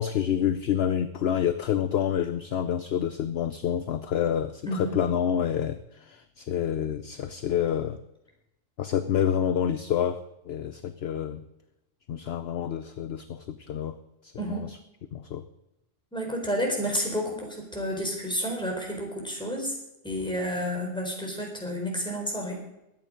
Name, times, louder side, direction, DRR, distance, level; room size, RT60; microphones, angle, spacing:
voice 1, 0.0-8.0 8.8-10.2 10.5-11.4 12.1-13.9 14.2-14.8 15.1-15.4, left 9 dB, 60° left, 11 dB, 0.8 m, -28 dB
voice 2, 16.1-19.7 20.0-22.6, equal, 5° left, -1 dB, 4.2 m, -30 dB
21.5 x 8.8 x 5.2 m, 0.88 s
omnidirectional pair, 1.3 m